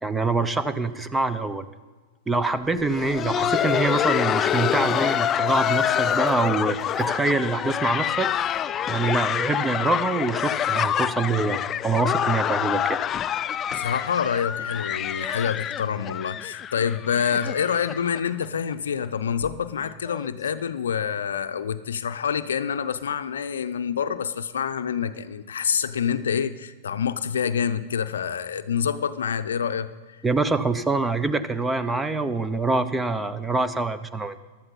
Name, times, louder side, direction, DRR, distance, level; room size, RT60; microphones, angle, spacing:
voice 1, 0.0-1.7 2.3-8.3 8.9-13.0 30.2-34.4, right 3 dB, 10° right, 12 dB, 0.8 m, -25 dB
Laughter, 2.8-18.4 18.7-18.8 19.4-19.5 20.1-20.3 21.3-21.4, left 10 dB, 30° left, 0.3 m, -26 dB
voice 2, 13.7-29.9, left 7 dB, 80° left, 12 dB, 0.6 m, -27 dB
15.5 x 12.0 x 4.1 m, 1.4 s
hypercardioid pair, 100°, 0 cm